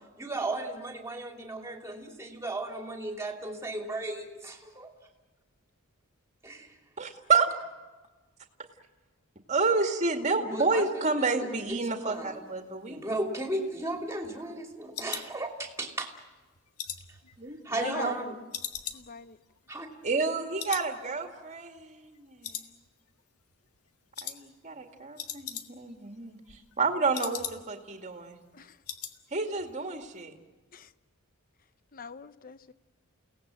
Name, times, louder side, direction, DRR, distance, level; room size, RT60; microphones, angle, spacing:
voice 1, 0.2-4.9 6.4-6.7 10.5-12.4 12.9-16.1 17.6-18.4 19.7-19.9, right 2 dB, 15° right, 2.9 m, -35 dB
voice 2, 7.0-7.5 9.5-13.0 17.4-18.1 20.0-22.7 24.2-28.4 29.3-30.3, right 4 dB, 35° right, 2.2 m, -30 dB
sound 1, 13.3-16.0 16.4-18.2 18.5-20.3 20.6-20.9 21.2-21.3 21.8-22.2 22.4-23.2 23.5-23.8 24.2-24.4 24.7-24.8 25.0-26.0 26.3-27.9 28.2-28.3 28.6-29.2 29.5-29.7 30.0-30.1, left 10 dB, 90° left, 1.6 m, -40 dB
voice 3, 17.6-18.3 18.9-19.4 28.5-28.8 30.7-30.9 31.9-32.7, left 5 dB, 40° left, 0.7 m, -43 dB
30.0 x 18.0 x 7.7 m
head